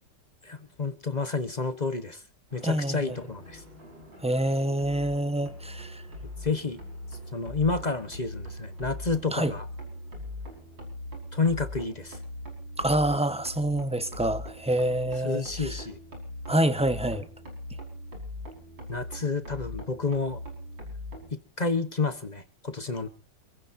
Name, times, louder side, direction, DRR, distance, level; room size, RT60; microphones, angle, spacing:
voice 1, 0.4-2.2 2.5-3.6 6.4-6.8 7.3-9.7 11.3-12.2 15.2-16.0 18.9-20.4 21.3-23.1, left 4 dB, 30° left, 1.0 m, -30 dB
sound 1, 2.5-21.3, left 1 dB, 85° right, 6.0 m, -41 dB
voice 2, 2.6-3.1 4.2-6.0 9.3-9.5 12.8-15.7 16.5-17.2, right 1 dB, 5° right, 0.8 m, -27 dB
27.5 x 15.5 x 2.7 m
omnidirectional pair, 2.0 m